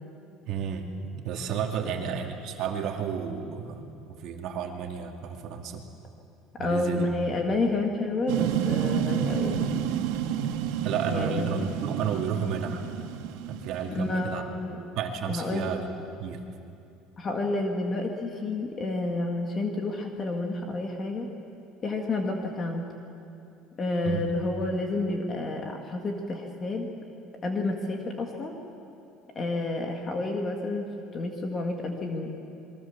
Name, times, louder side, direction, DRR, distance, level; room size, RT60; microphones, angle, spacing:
voice 1, 0.5-0.9 1.2-5.8 6.6-7.1 10.8-12.8 13.5-14.5 15.0-15.9 16.2-16.4 24.0-24.3, right 7 dB, 50° right, 3 dB, 2.3 m, -32 dB
voice 2, 6.6-9.5 11.1-11.7 13.9-14.8 15.3-15.7 17.2-21.3 21.8-22.9 23.8-26.9 27.4-28.6 29.4-32.3, left 2 dB, 25° left, 2 dB, 1.9 m, -30 dB
sound 1, 8.3-14.3, right 9 dB, 80° right, 1.7 m, -30 dB
27.5 x 22.5 x 7.2 m, 2.7 s
cardioid pair, 165°, 0 cm